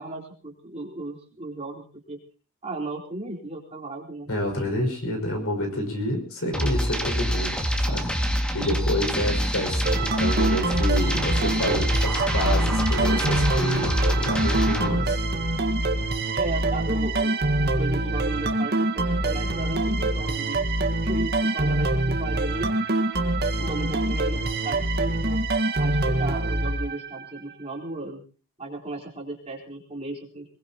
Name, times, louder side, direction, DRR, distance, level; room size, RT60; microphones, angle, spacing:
voice 1, 0.0-2.2 2.6-4.3 16.3-20.7 21.0-22.7 23.6-25.4 25.8-28.2 28.6-30.4, right 2 dB, 30° right, -1 dB, 4.2 m, -35 dB
voice 2, 4.3-8.1 8.5-15.2, left 1 dB, 70° left, 4 dB, 5.7 m, -29 dB
sound 1, 6.5-14.9, equal, 5° left, 2.1 m, -25 dB
sound 2, 9.9-27.4, right 2 dB, 45° right, 1.5 m, -25 dB
23.0 x 21.5 x 2.9 m, 0.39 s
head